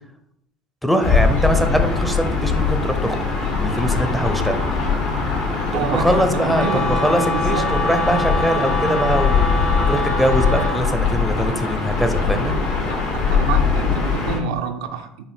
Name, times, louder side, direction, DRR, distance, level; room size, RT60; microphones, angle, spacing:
voice 1, 0.8-3.2 3.6-4.6 5.7-9.5 9.8-12.5, equal, ahead, 6 dB, 0.6 m, -22 dB
Gull seagull / Ocean, 1.0-14.4, left 5 dB, 60° left, 1.2 m, -21 dB
sound 1, 3.5-13.6, left 2 dB, 80° left, 0.9 m, -34 dB
voice 2, 5.7-6.8 7.3-7.7 13.1-15.2, right 5 dB, 85° right, 5 dB, 0.4 m, -27 dB
Wind instrument woodwind instrument, 6.5-10.9, left 2 dB, 30° left, 0.9 m, -25 dB
5.4 x 2.1 x 3.5 m, 0.78 s
hypercardioid pair, 80°, 3 cm